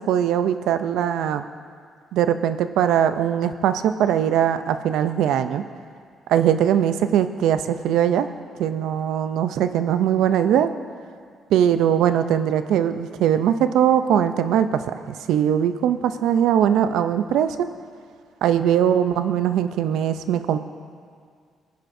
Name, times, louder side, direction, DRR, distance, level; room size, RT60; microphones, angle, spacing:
voice 1, 0.1-1.4 2.1-5.6 6.3-8.3 8.6-10.7 11.5-17.7 18.4-20.6, right 9 dB, 85° right, 11 dB, 0.5 m, -21 dB
18.5 x 10.0 x 2.6 m, 2.1 s
cardioid pair, 90°, 0 cm